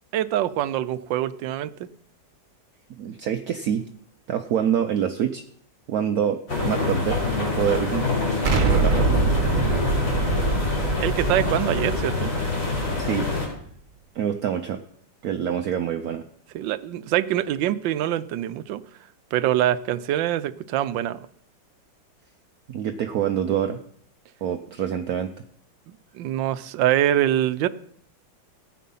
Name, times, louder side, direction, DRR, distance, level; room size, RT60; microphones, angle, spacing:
voice 1, 0.1-1.9 9.7-9.8 11.0-12.3 16.5-18.8 19.3-21.3 26.1-27.7, right 12 dB, 85° right, 15 dB, 1.4 m, -24 dB
voice 2, 2.9-3.9 4.3-5.4 5.9-8.1 8.6-9.5 13.0-13.3 14.1-14.8 15.2-16.2 22.7-23.8 24.4-25.3, right 9 dB, 65° right, 7 dB, 1.0 m, -26 dB
sound 1, 6.5-13.5, left 3 dB, 80° left, 5.1 m, -25 dB
Explosion, 8.4-13.3, right 5 dB, 50° right, 1.3 m, -25 dB
14.5 x 8.3 x 5.5 m, 0.65 s
omnidirectional pair, 2.0 m